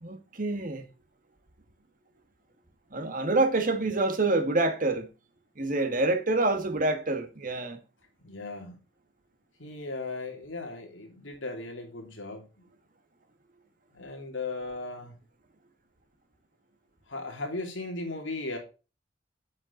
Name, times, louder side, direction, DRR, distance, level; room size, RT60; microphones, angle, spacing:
voice 1, 0.0-0.8 2.9-5.1 5.6-7.8, right 2 dB, 45° right, 1.6 m, -27 dB
voice 2, 8.2-8.8 9.6-12.4 13.9-15.1 17.1-18.6, left 2 dB, 90° left, 3.0 m, -37 dB
7.9 x 7.4 x 3.9 m
head